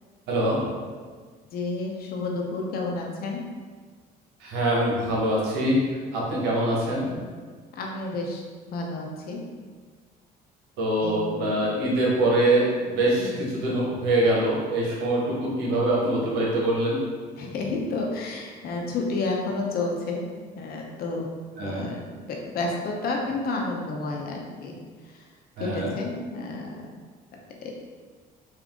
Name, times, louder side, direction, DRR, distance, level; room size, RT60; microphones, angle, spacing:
voice 1, 1.5-3.4 7.8-9.4 11.0-11.5 13.2-13.5 17.4-20.2 20.5-21.3 21.6-24.8 25.6-26.8 27.6-27.7, left 3 dB, 65° left, 0 dB, 0.8 m, -30 dB
voice 2, 4.4-5.9 6.1-7.0 10.8-17.0 21.6-21.9 25.6-25.9, right 1 dB, 90° right, -4 dB, 1.2 m, -24 dB
3.7 x 2.7 x 3.6 m, 1.5 s
cardioid pair, 110°, 17 cm